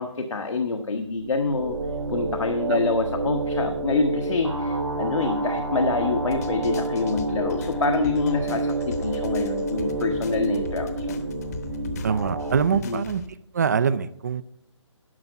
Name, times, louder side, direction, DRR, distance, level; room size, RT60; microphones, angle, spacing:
voice 1, 0.0-1.8 2.1-11.2 12.7-13.0, left 3 dB, 75° left, 4 dB, 1.1 m, -26 dB
sound 1, 1.0-12.6, right 2 dB, 90° right, 2.5 m, -28 dB
sound 2, 6.3-13.3, left 4 dB, 30° left, 0.9 m, -40 dB
voice 2, 12.0-13.2 13.5-14.4, right 6 dB, 35° right, 16 dB, 0.4 m, -24 dB
11.0 x 5.8 x 5.4 m, 0.76 s
figure-of-eight pair, 155°, 16 cm